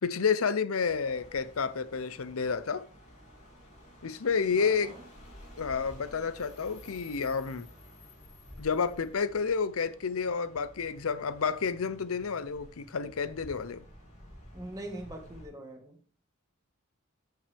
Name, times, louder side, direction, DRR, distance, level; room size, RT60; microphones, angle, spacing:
voice 1, 0.0-2.8 4.0-4.9 5.6-7.7 8.6-13.9, left 5 dB, 90° left, 0.7 m, -30 dB
sound 1, 0.8-15.5, equal, 35° left, 2.8 m, -52 dB
voice 2, 4.5-5.0 14.5-16.0, right 1 dB, 15° right, 1.6 m, -43 dB
14.0 x 5.8 x 3.4 m
head